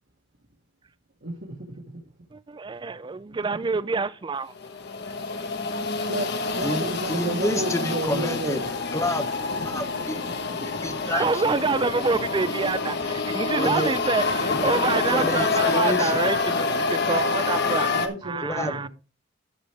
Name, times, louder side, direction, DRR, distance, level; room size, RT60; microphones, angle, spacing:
voice 1, 1.2-2.0 5.7-8.7 9.9-10.1 10.6-10.7 17.9-18.9, right 1 dB, 60° right, 2.4 m, -32 dB
voice 2, 2.3-4.5 11.1-17.9 18.2-18.9, right 4 dB, 25° right, 0.4 m, -27 dB
sound 1, 4.6-18.1, left 3 dB, 60° left, 1.2 m, -27 dB
voice 3, 6.6-8.6 8.9-9.3 9.6-10.2 10.6-11.6 13.5-13.9 14.5-14.8 15.1-16.2 18.4-18.7, left 1 dB, 15° left, 0.9 m, -29 dB
12.5 x 6.5 x 3.4 m
head